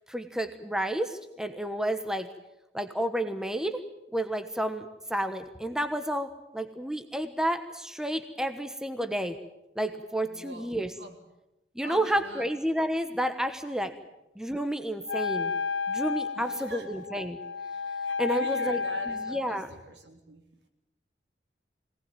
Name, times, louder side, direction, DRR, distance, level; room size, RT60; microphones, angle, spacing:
voice 1, 0.1-2.3 2.7-3.8 4.1-9.4 9.8-10.9 11.7-13.9 14.4-15.5 15.9-17.4 18.2-18.8 19.1-19.7, right 1 dB, 5° right, 8 dB, 1.1 m, -30 dB
voice 2, 10.3-11.2 11.8-12.5 16.4-16.9 18.2-20.4, right 2 dB, 80° right, 4 dB, 3.5 m, -44 dB
Wind instrument woodwind instrument, 15.1-19.6, left 5 dB, 85° left, 0.9 m, -32 dB
23.5 x 18.5 x 9.1 m, 0.94 s
head